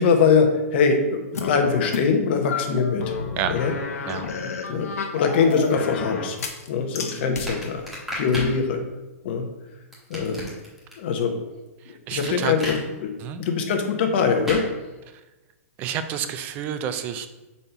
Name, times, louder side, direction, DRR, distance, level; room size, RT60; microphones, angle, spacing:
voice 1, 0.0-3.2 3.5-3.7 4.0-4.1 4.7-6.4 6.7-7.9 8.1-8.8 9.2-9.5 10.1-10.4 11.0-11.3 12.1-12.8 13.0-13.1 13.4-14.6, left 5 dB, 45° left, 5 dB, 0.9 m, -22 dB
sound 1, 1.3-2.1 2.5-6.7 6.9-7.5, left 5 dB, 75° left, 0.9 m, -31 dB
sound 2, 7.5-8.5 9.9-10.9 12.2-12.8 14.5-14.7, equal, 5° right, 1.2 m, -32 dB
voice 2, 11.8-12.5 13.2-13.4 15.1-15.2 15.8-17.3, right 9 dB, 20° right, 9 dB, 0.3 m, -29 dB
5.3 x 4.2 x 4.5 m, 1.1 s
hypercardioid pair, 160°, 8 cm